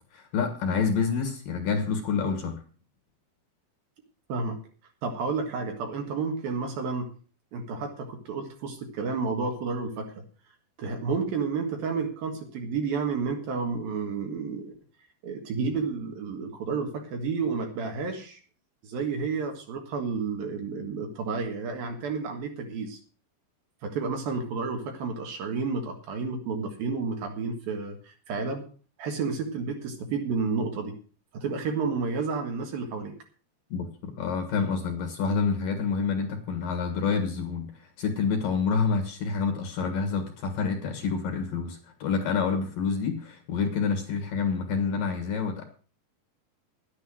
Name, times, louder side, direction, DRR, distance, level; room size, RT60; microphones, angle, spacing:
voice 1, 0.1-2.6 33.7-45.6, left 5 dB, 60° left, 6 dB, 2.8 m, -28 dB
voice 2, 4.3-4.6 5.0-7.1 7.5-10.1 10.8-14.7 15.2-18.4 18.8-23.0 23.8-28.6 29.0-31.0 31.3-33.1, right 4 dB, 60° right, 4 dB, 3.1 m, -31 dB
11.0 x 10.0 x 6.3 m, 0.39 s
omnidirectional pair, 5.1 m